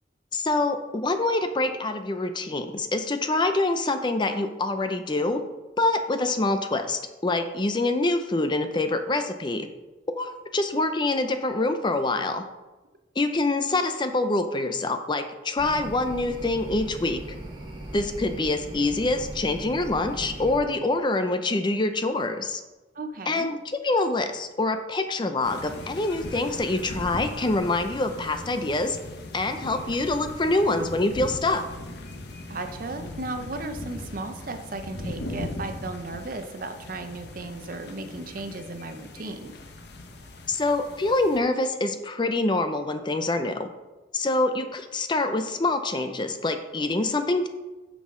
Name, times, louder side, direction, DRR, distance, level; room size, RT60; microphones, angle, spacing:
voice 1, 0.3-5.4 5.8-9.7 10.2-12.4 13.2-17.2 17.9-22.6 23.3-23.6 23.8-29.0 29.3-31.6 40.5-43.7 44.1-47.5, left 2 dB, 25° left, 8 dB, 0.5 m, -25 dB
sound 1, 15.6-20.6, right 1 dB, 25° right, 1.5 m, -38 dB
voice 2, 22.9-23.5 32.5-39.5, right 2 dB, 45° right, 7 dB, 0.7 m, -35 dB
sound 2, 25.4-41.4, left 1 dB, 60° left, 0.9 m, -39 dB
9.1 x 6.2 x 3.7 m, 1.1 s
head